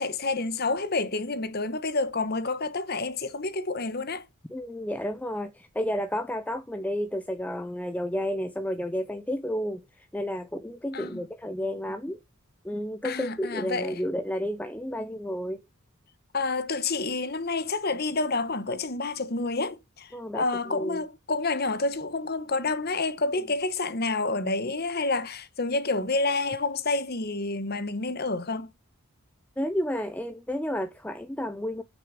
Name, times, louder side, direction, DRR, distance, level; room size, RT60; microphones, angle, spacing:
voice 1, 0.0-4.2 10.9-11.2 13.0-14.0 16.3-28.7, left 3 dB, 45° left, 1.1 m, -29 dB
voice 2, 4.5-12.2 12.6-15.6 20.1-21.0 29.6-31.8, equal, 5° left, 0.5 m, -31 dB
8.9 x 6.6 x 5.2 m
head